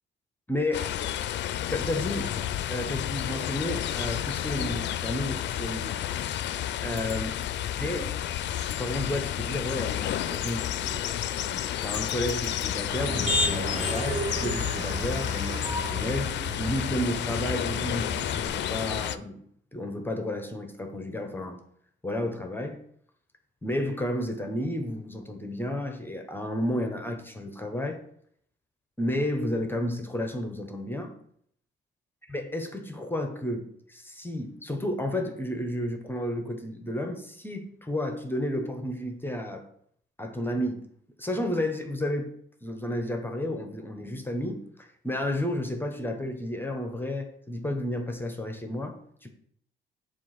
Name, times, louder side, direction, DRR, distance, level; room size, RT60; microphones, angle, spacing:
voice 1, 0.5-0.8 1.7-6.0 6.8-7.4 7.8-8.2 8.8-11.1 11.5-16.3 16.6-19.4 19.7-21.6 22.0-22.8 23.6-28.0 29.0-31.1 32.3-39.6 40.2-40.9 41.2-42.3 42.6-49.3, left 1 dB, 10° left, 5 dB, 0.8 m, -32 dB
sound 1, 0.7-19.2, left 11 dB, 65° left, 0.4 m, -31 dB
Motor vehicle (road), 12.9-18.5, left 1 dB, 30° right, 2.5 m, -32 dB
7.4 x 2.5 x 5.7 m, 0.66 s
cardioid pair, 90°, 20 cm